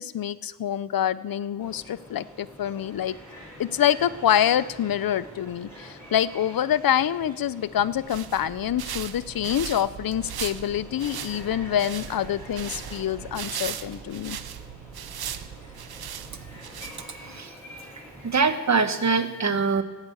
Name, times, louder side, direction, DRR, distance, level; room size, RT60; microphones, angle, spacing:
voice 1, 0.0-3.2 3.6-14.4, left 10 dB, 70° left, 17 dB, 0.6 m, -26 dB
sound 1, 1.6-18.5, equal, 5° left, 6.1 m, -46 dB
sound 2, 7.9-17.4, right 9 dB, 85° right, 0.7 m, -38 dB
voice 2, 17.2-17.5 18.2-19.8, right 4 dB, 50° right, 9 dB, 1.2 m, -23 dB
17.0 x 8.2 x 8.4 m, 1.2 s
wide cardioid pair, 110°, 36 cm